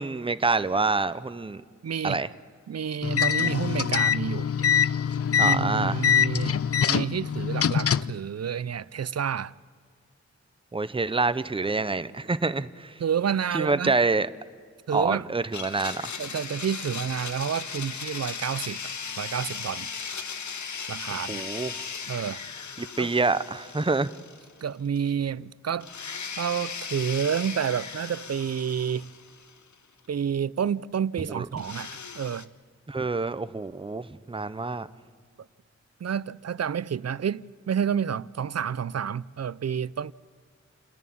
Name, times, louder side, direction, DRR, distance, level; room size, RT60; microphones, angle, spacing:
voice 1, 0.0-1.6 2.0-2.3 5.4-6.0 10.7-12.9 13.5-14.3 14.9-16.1 21.3-21.7 22.8-24.1 31.3-31.5 32.9-34.9, right 3 dB, 20° right, 0.6 m, -27 dB
voice 2, 1.8-2.2 2.7-4.5 5.4-9.5 13.0-13.9 14.9-15.2 16.2-19.9 20.9-21.4 22.1-22.4 23.0-23.1 24.6-25.9 26.4-29.1 30.1-32.5 36.0-40.1, right 8 dB, 60° right, 0.5 m, -29 dB
sound 1, 3.0-8.2, left 7 dB, 55° left, 0.4 m, -24 dB
Domestic sounds home sounds, 15.5-24.7 25.0-25.1 25.8-29.7 31.6-32.5, left 6 dB, 80° left, 0.9 m, -37 dB
29.0 x 11.0 x 8.6 m
wide cardioid pair, 85°, 29 cm